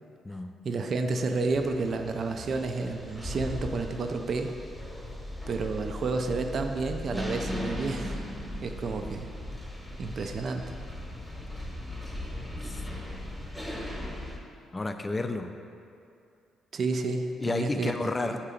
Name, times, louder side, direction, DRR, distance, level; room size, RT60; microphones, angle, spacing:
voice 1, 0.6-4.5 5.5-8.2 8.6-9.3 10.0-10.6 16.7-17.9 18.2-18.4, right 3 dB, 50° right, 5 dB, 0.4 m, -30 dB
sound 1, 1.5-14.4, left 1 dB, 5° left, 0.9 m, -38 dB
voice 2, 14.7-15.5 17.4-18.4, left 2 dB, 20° left, 7 dB, 0.4 m, -31 dB
6.6 x 2.9 x 4.9 m, 2.5 s
cardioid pair, 90°, 0 cm